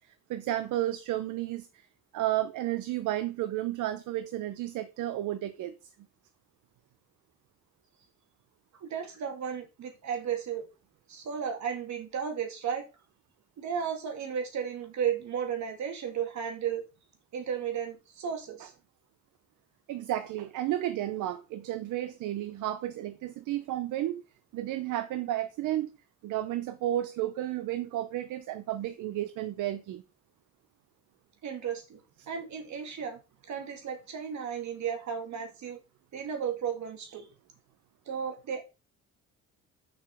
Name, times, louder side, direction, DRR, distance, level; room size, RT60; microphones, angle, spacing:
voice 1, 0.3-1.7 2.1-5.8 19.9-24.2 24.5-25.9 26.2-30.0, right 13 dB, 85° right, 0.7 m, -32 dB
voice 2, 8.8-10.7 11.1-12.9 13.6-16.8 17.3-18.7 31.4-32.0 32.3-35.8 36.1-37.2 38.1-38.6, right 7 dB, 70° right, 2.5 m, -34 dB
7.0 x 5.5 x 4.9 m
cardioid pair, 90°, 30 cm